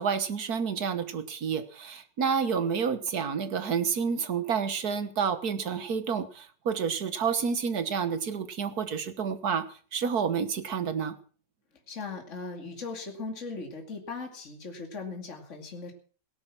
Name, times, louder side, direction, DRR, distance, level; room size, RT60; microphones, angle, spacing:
voice 1, 0.0-9.6 9.9-11.1, right 6 dB, 60° right, 10 dB, 1.7 m, -29 dB
voice 2, 11.9-15.9, left 4 dB, 40° left, 3 dB, 2.8 m, -38 dB
18.0 x 11.0 x 6.0 m, 0.41 s
omnidirectional pair, 1.9 m